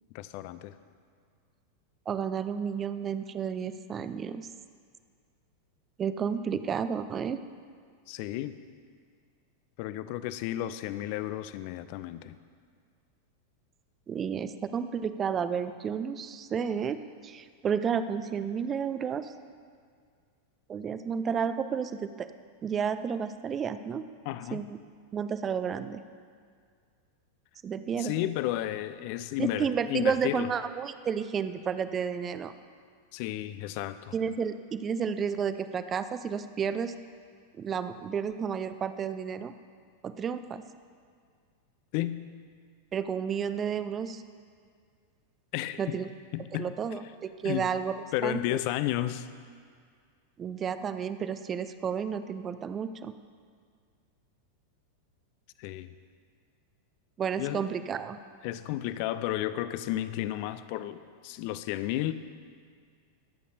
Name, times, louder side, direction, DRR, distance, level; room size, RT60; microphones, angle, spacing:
voice 1, 0.1-0.8 8.1-8.5 9.8-12.4 24.3-24.6 28.0-30.5 33.1-34.1 41.9-42.2 45.5-46.0 46.3-47.0 47.4-47.7 48.1-49.3 55.6-55.9 57.4-57.7 58.4-62.1, left 14 dB, 45° left, 13 dB, 0.5 m, -33 dB
voice 2, 2.1-4.5 6.0-7.4 14.1-17.0 17.2-19.3 20.7-22.3 22.6-24.0 24.5-24.6 25.1-26.0 27.6-28.1 29.4-32.5 34.1-36.9 37.6-39.5 40.0-40.6 42.9-44.2 45.8-46.1 46.5-47.9 48.2-48.4 50.4-53.1 57.2-58.2, right 7 dB, 25° right, 11 dB, 0.5 m, -31 dB
22.5 x 8.3 x 2.7 m, 2.1 s
figure-of-eight pair, 90°, 0 cm